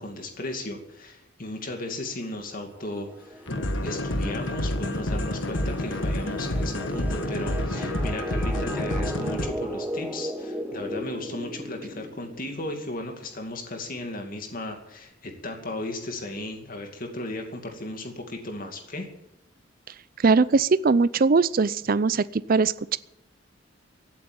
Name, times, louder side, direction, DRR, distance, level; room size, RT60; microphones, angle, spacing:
voice 1, 0.0-3.5 3.8-19.1, left 2 dB, 45° left, 3 dB, 2.4 m, -35 dB
sound 1, 2.4-12.9, equal, 10° right, 1.5 m, -37 dB
sound 2, 3.5-9.5, left 1 dB, 75° left, 1.4 m, -28 dB
voice 2, 20.2-23.0, right 4 dB, 50° right, 17 dB, 0.5 m, -21 dB
16.5 x 9.3 x 8.9 m, 0.87 s
head